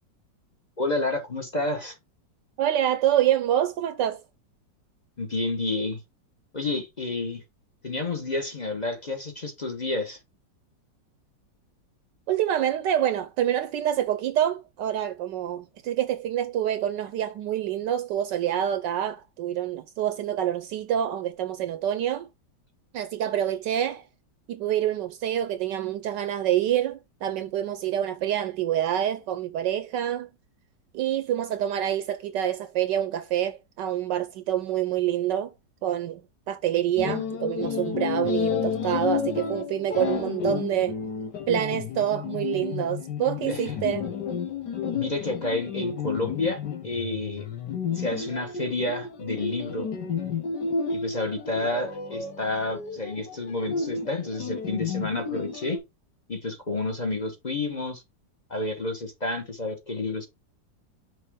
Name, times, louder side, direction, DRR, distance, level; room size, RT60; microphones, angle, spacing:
voice 1, 0.8-2.0 5.2-6.0 6.5-7.4 7.8-10.2 43.4-43.6 44.9-47.5 47.9-49.9 50.9-55.8 56.3-58.0 58.5-60.3, left 2 dB, 30° left, 0.9 m, -30 dB
voice 2, 2.6-4.2 12.3-22.3 22.9-24.0 24.5-30.3 30.9-35.5 35.8-36.2 36.5-41.0 41.5-44.0, right 11 dB, 75° right, 1.2 m, -26 dB
sound 1, 37.0-55.8, left 6 dB, 65° left, 1.9 m, -31 dB
6.1 x 3.2 x 4.9 m
omnidirectional pair, 2.0 m